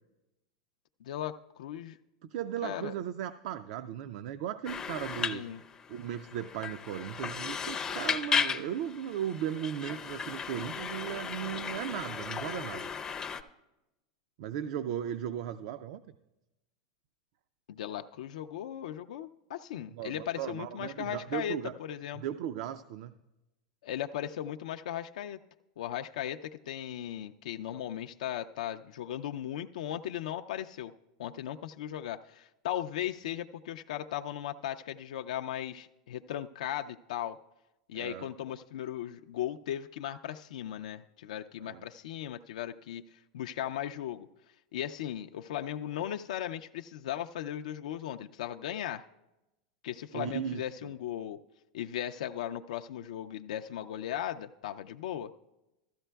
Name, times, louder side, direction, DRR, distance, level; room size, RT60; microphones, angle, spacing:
voice 1, 1.0-2.0 2.6-2.9 5.3-5.6 17.7-22.2 23.8-25.4 25.8-30.9 31.2-37.4 37.9-44.3 44.7-49.0 49.8-51.4 51.7-55.3, left 11 dB, 85° left, 6 dB, 0.3 m, -37 dB
voice 2, 2.2-5.4 5.9-12.9 14.4-16.0 19.9-21.7 22.2-23.2 37.9-38.3 41.6-41.9 50.1-50.9, right 10 dB, 60° right, 10 dB, 0.3 m, -37 dB
sound 1, 4.7-13.4, left 6 dB, 15° left, 0.4 m, -35 dB
14.5 x 13.5 x 2.3 m, 0.98 s
supercardioid pair, 140°, 4 cm